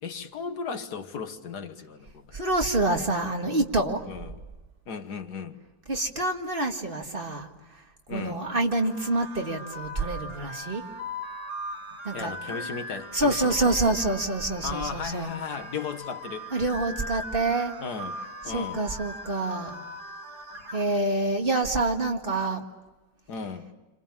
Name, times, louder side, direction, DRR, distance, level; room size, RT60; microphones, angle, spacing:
voice 1, 0.0-2.2 4.0-4.4 4.9-5.6 8.1-8.4 12.1-13.8 14.6-16.5 17.8-18.2 18.4-18.8 23.3-23.7, left 5 dB, 80° left, 1.9 m, -35 dB
voice 2, 2.3-4.0 5.9-7.5 8.1-10.8 12.0-12.7 13.1-15.3 16.5-17.7 18.5-19.8 20.7-22.6, right 2 dB, 35° right, 2.0 m, -27 dB
sound 1, 8.7-20.8, equal, 80° right, 4.9 m, -39 dB
29.5 x 26.5 x 7.3 m
omnidirectional pair, 1.7 m